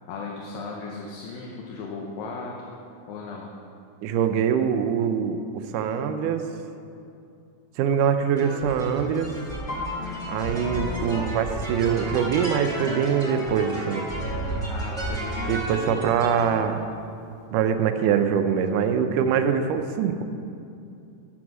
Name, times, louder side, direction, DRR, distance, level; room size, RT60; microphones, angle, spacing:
voice 1, 0.1-2.6 3.1-3.5 10.0-10.3 14.7-15.6, left 4 dB, 75° left, -1 dB, 2.5 m, -36 dB
voice 2, 4.0-5.4 5.7-6.4 7.8-9.3 10.3-14.1 15.5-16.8 17.5-20.2, right 7 dB, 85° right, 7 dB, 1.8 m, -23 dB
sound 1, 8.4-16.6, right 1 dB, 5° left, 0.7 m, -32 dB
Piano, 9.7-13.3 13.7-14.1 14.4-15.1 15.7-15.8 16.0-17.0 17.4-17.5, left 2 dB, 45° left, 1.9 m, -40 dB
9.8 x 6.1 x 6.1 m, 2.6 s
omnidirectional pair, 4.3 m